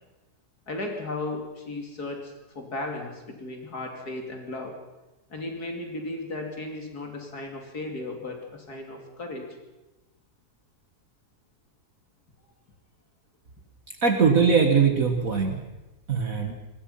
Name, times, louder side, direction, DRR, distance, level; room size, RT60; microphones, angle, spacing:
voice 1, 0.7-4.8 5.3-9.5, left 2 dB, 65° left, 2 dB, 3.4 m, -35 dB
voice 2, 14.0-15.6 16.1-16.5, right 5 dB, 55° right, 4 dB, 2.0 m, -21 dB
25.0 x 20.0 x 5.7 m, 1.0 s
omnidirectional pair, 1.8 m